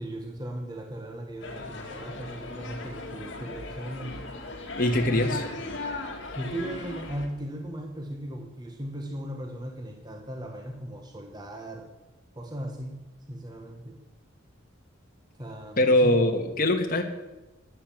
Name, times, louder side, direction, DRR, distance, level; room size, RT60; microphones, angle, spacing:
voice 1, 0.0-4.3 5.0-5.4 6.3-11.9 12.3-13.0 13.3-14.0 15.4-16.2, right 1 dB, 20° right, 3 dB, 1.2 m, -37 dB
sound 1, 1.4-7.3, left 2 dB, 65° left, 2.2 m, -37 dB
voice 2, 4.8-5.4 15.8-17.0, left 1 dB, 45° left, 3 dB, 1.5 m, -22 dB
13.0 x 9.2 x 7.3 m, 1.0 s
head